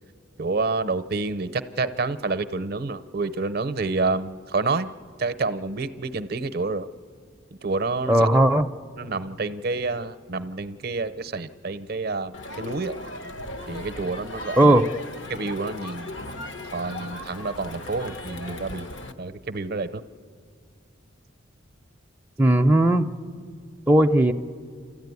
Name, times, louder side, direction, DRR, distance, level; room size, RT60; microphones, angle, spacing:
voice 1, 0.4-4.9 5.2-6.9 7.6-8.3 8.9-13.0 13.7-14.7 15.3-16.2 16.7-18.9 19.2-20.0, right 3 dB, 50° right, 12 dB, 0.6 m, -28 dB
voice 2, 8.1-8.7 14.6-14.8 22.4-23.1 23.9-24.3, right 1 dB, 10° right, 3 dB, 0.5 m, -17 dB
Crowd, 12.3-19.1, left 2 dB, 70° left, 1.1 m, -37 dB
29.5 x 13.5 x 9.5 m, 2.2 s
head